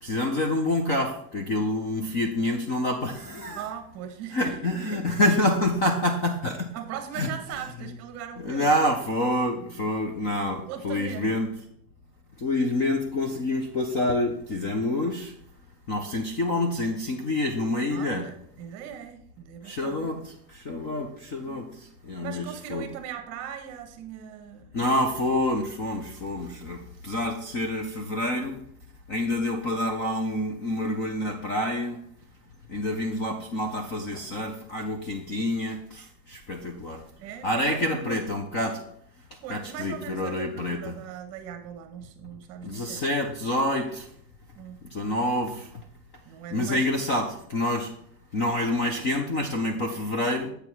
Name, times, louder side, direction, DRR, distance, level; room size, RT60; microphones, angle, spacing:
voice 1, 0.0-3.6 4.3-6.7 7.1-7.3 8.4-11.5 12.4-15.3 15.9-18.3 19.6-21.7 22.0-22.4 22.7-22.9 24.7-28.6 29.1-32.0 32.7-37.0 37.4-38.8 39.5-41.0 42.6-44.1 44.9-45.7 46.5-47.9 48.3-50.5, left 1 dB, 25° left, 4 dB, 0.4 m, -27 dB
voice 2, 3.6-5.3 6.7-8.7 9.5-9.8 10.7-11.3 17.9-20.1 21.4-21.8 22.2-24.7 37.2-38.2 39.4-43.0 44.5-44.8 46.2-47.2, right 9 dB, 30° right, 8 dB, 1.0 m, -39 dB
7.9 x 4.6 x 5.4 m, 0.66 s
supercardioid pair, 165°, 48 cm